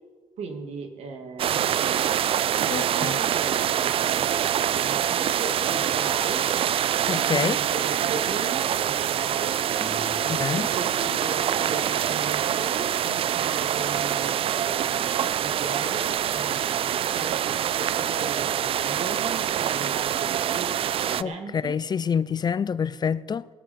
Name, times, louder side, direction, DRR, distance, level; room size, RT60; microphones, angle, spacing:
voice 1, 0.4-2.2 2.6-6.5 7.3-9.6 10.2-20.7 21.0-21.8, right 4 dB, 80° right, 2.0 m, -37 dB
sound 1, 1.4-21.2, right 10 dB, 60° right, 0.4 m, -25 dB
voice 2, 2.7-3.2 7.1-7.6 10.3-10.7 21.2-23.5, left 6 dB, 40° left, 0.5 m, -27 dB
sound 2, 9.7-13.4, left 3 dB, 10° left, 1.9 m, -46 dB
19.5 x 13.5 x 4.2 m
cardioid pair, 70°, 11 cm